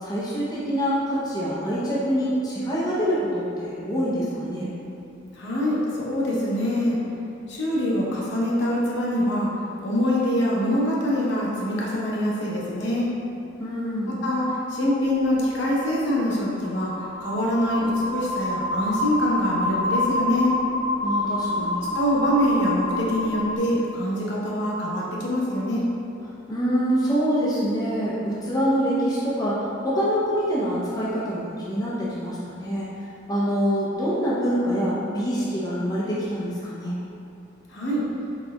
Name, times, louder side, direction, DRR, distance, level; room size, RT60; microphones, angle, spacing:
voice 1, 0.0-4.7 13.6-14.2 21.0-21.9 26.5-37.0, equal, 20° left, -9 dB, 0.5 m, -25 dB
voice 2, 5.3-7.0 7.5-9.5 9.8-13.1 14.0-20.5 21.9-25.8 37.7-38.0, equal, 60° left, -6 dB, 0.8 m, -24 dB
sound 1, 15.1-23.6, left 2 dB, 35° left, 0.9 m, -28 dB
4.3 x 3.9 x 2.2 m, 2.7 s
head